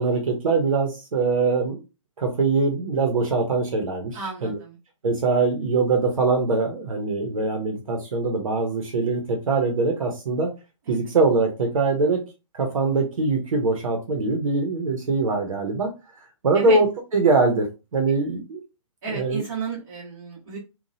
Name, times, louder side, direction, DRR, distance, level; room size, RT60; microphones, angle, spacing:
voice 1, 0.0-1.8 2.2-4.6 5.0-10.5 10.9-12.2 12.5-15.9 16.4-16.9 17.1-18.6 19.1-19.4, right 3 dB, 85° right, 3 dB, 0.9 m, -22 dB
voice 2, 4.1-4.7 10.9-11.0 16.5-16.8 19.0-20.6, right 5 dB, 35° right, -10 dB, 1.5 m, -32 dB
2.9 x 2.3 x 2.7 m, 0.28 s
hypercardioid pair, 175°, 17 cm